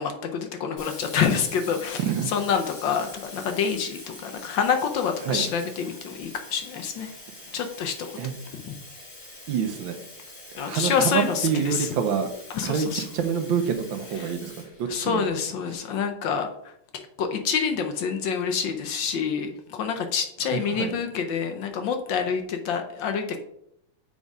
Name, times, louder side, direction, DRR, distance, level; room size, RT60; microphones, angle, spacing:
voice 1, 0.0-7.1 7.5-8.1 8.6-8.8 10.6-11.9 12.5-13.0 14.2-14.3 14.9-23.4, left 6 dB, 70° left, 6 dB, 1.3 m, -27 dB
Sink (filling or washing), 0.8-15.5, left 2 dB, 85° left, 4.1 m, -44 dB
voice 2, 2.0-2.3 5.2-5.4 8.2-8.3 9.5-10.0 10.6-12.3 12.6-15.3 20.5-20.9, right 7 dB, 70° right, 7 dB, 1.3 m, -27 dB
7.0 x 3.8 x 5.3 m, 0.76 s
omnidirectional pair, 2.4 m